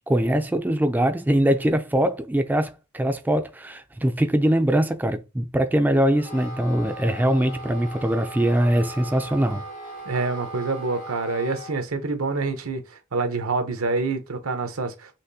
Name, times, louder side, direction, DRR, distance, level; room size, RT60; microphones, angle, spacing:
voice 1, 0.1-9.6, right 1 dB, 10° right, 0.3 m, -22 dB
Wind instrument woodwind instrument, 6.1-11.8, equal, 70° left, 2.7 m, -38 dB
voice 2, 10.0-15.2, right 3 dB, 90° right, 0.9 m, -27 dB
5.7 x 3.0 x 2.7 m
head